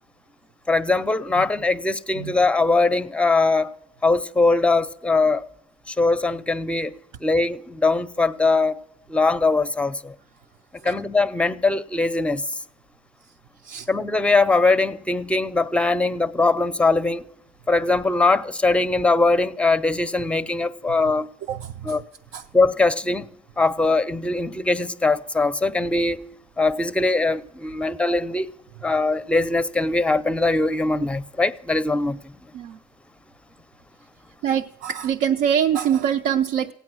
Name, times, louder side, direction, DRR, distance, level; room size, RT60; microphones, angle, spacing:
voice 1, 0.7-3.7 4.0-5.4 5.9-6.9 7.2-8.8 9.1-10.1 10.8-12.4 13.9-17.2 17.7-21.3 21.9-22.0 22.5-23.3 23.6-26.2 26.6-28.5 28.8-32.2, left 3 dB, 5° left, 0.5 m, -21 dB
voice 2, 21.5-22.0 22.3-22.5 32.5-32.8 34.4-36.7, right 9 dB, 80° right, 0.5 m, -24 dB
16.0 x 9.3 x 6.1 m
cardioid pair, 110°, 17 cm